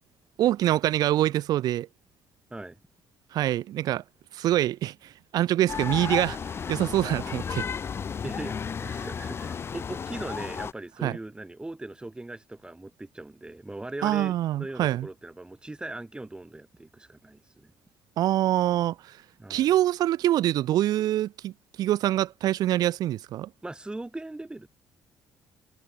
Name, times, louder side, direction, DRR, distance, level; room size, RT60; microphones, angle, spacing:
voice 1, 0.4-1.9 3.3-4.0 4.3-7.6 11.0-11.2 14.0-15.1 18.2-19.2 19.5-23.5, right 13 dB, 70° right, 0.4 m, -25 dB
sound 1, 5.7-10.7, left 6 dB, 35° left, 0.5 m, -33 dB
voice 2, 8.2-17.7 19.4-19.7 23.6-24.7, right 2 dB, 15° right, 5.8 m, -39 dB
cardioid pair, 95°, 7 cm